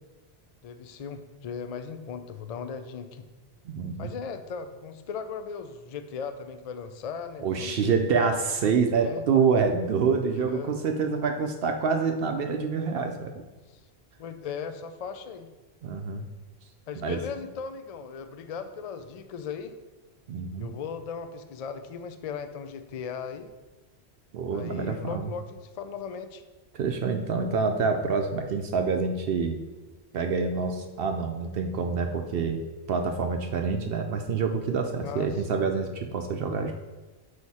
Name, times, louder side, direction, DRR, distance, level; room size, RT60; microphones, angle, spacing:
voice 1, 0.6-3.3 4.0-8.0 8.6-8.7 9.0-9.2 10.3-10.7 13.7-13.8 14.2-15.5 16.9-19.7 20.6-23.5 24.5-26.4 35.0-35.3, left 6 dB, 55° left, 9 dB, 0.4 m, -37 dB
voice 2, 3.7-4.1 7.4-13.3 15.8-16.3 17.0-17.2 20.3-20.7 24.3-25.3 26.7-29.6 30.1-32.6 32.9-36.7, right 5 dB, 65° right, 4 dB, 0.7 m, -27 dB
6.4 x 4.9 x 4.1 m, 1.2 s
omnidirectional pair, 1.1 m